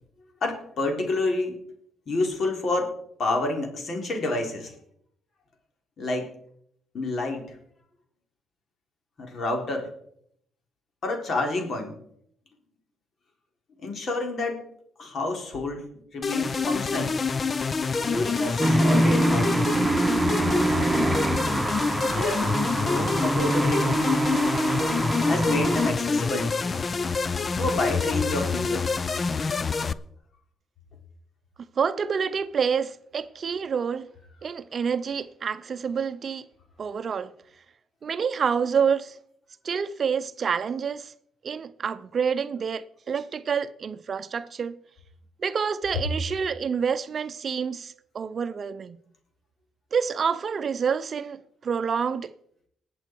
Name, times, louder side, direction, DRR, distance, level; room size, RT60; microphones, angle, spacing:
voice 1, 0.4-1.6 2.1-2.9 3.2-4.7 6.0-6.3 6.9-7.6 9.2-9.9 11.0-12.0 13.8-14.6 15.0-15.9 16.1-17.2 17.9-19.7 22.1-24.1 25.3-26.6 27.6-28.9, left 2 dB, 55° left, 3.7 m, -29 dB
sound 1, 16.2-29.9, left 4 dB, 35° left, 0.6 m, -26 dB
sound 2, 18.6-25.9, right 2 dB, 15° right, 1.4 m, -25 dB
voice 2, 31.8-34.1 34.4-36.5 36.8-37.3 38.0-39.2 39.6-41.1 41.4-44.8 45.4-49.0 49.9-52.3, right 6 dB, 45° right, 0.6 m, -28 dB
20.0 x 7.8 x 4.6 m
cardioid pair, 90°, 0 cm